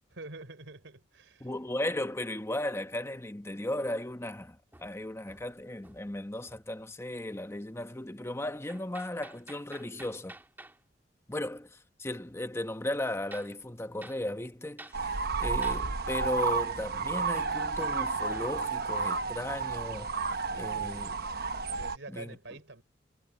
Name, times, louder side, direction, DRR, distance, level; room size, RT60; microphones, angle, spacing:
voice 1, 0.1-1.5 20.4-21.0 21.7-22.8, right 2 dB, 80° right, 4.2 m, -46 dB
voice 2, 1.4-10.4 11.3-21.1 22.1-22.4, left 1 dB, 15° left, 1.1 m, -36 dB
Hammer, 4.7-6.2 6.5-6.8 8.7-10.8 13.3-13.6 14.0-14.2 14.8-15.0 15.6-15.9 17.4-19.2, right 2 dB, 10° right, 1.7 m, -50 dB
sound 1, 14.9-22.0, right 5 dB, 55° right, 1.0 m, -32 dB
head